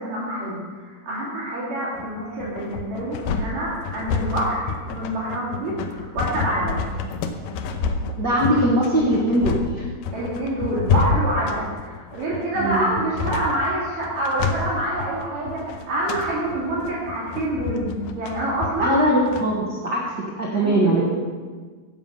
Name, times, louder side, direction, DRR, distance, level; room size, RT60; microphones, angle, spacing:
voice 1, 0.0-6.8 10.1-19.0 20.6-21.0, right 1 dB, 85° right, -7 dB, 4.2 m, -27 dB
sound 1, 2.0-19.4, left 5 dB, 80° left, 2.3 m, -28 dB
voice 2, 8.2-9.9 12.6-12.9 18.8-20.0 20.4-21.0, right 1 dB, 45° right, -4 dB, 1.5 m, -21 dB
15.5 x 5.9 x 5.5 m, 1.5 s
omnidirectional pair, 3.8 m